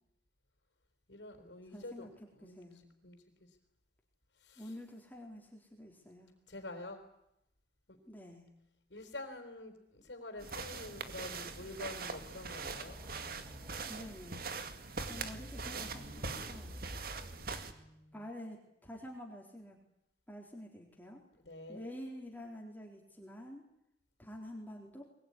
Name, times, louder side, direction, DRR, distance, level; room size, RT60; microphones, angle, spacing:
voice 1, 1.1-2.7 3.0-3.5 4.4-4.7 6.5-7.0 7.9-8.0 8.9-13.0 17.0-18.2 21.5-22.0, left 2 dB, 85° left, 4 dB, 4.3 m, -48 dB
voice 2, 1.7-2.8 4.6-6.3 8.1-8.5 13.8-14.4 15.1-16.8 18.1-19.8 20.3-21.2 21.7-23.6 24.2-25.0, equal, 10° left, -1 dB, 3.9 m, -48 dB
sound 1, 10.4-11.9 12.2-12.3 12.6-14.1 14.8-17.9, equal, 15° right, 5.8 m, -51 dB
sound 2, 10.4-17.7, right 4 dB, 55° right, 2.2 m, -42 dB
23.0 x 21.0 x 9.9 m, 0.81 s
head